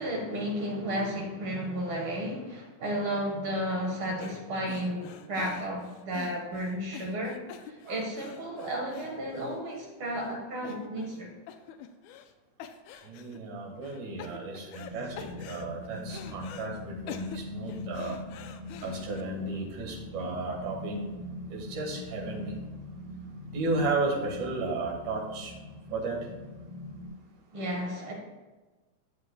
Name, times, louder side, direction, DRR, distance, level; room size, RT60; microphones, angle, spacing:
voice 1, 0.0-7.4 7.7-11.3 20.5-20.6 27.5-28.1, equal, 50° right, -1 dB, 1.9 m, -33 dB
sound 1, 4.2-4.4 4.7-9.8 10.2-10.3 10.6-11.2 11.5-12.3 12.6-13.4 13.8-14.9 15.2-16.7 17.1-19.2, left 8 dB, 80° left, 1.9 m, -46 dB
voice 2, 13.0-18.2 18.8-21.2 21.5-22.6 23.5-25.6 25.9-26.3, right 3 dB, 80° right, -2 dB, 3.1 m, -34 dB
sound 2, 14.9-27.1, left 1 dB, 60° left, 0.9 m, -42 dB
12.5 x 7.6 x 2.2 m, 1.2 s
omnidirectional pair, 3.4 m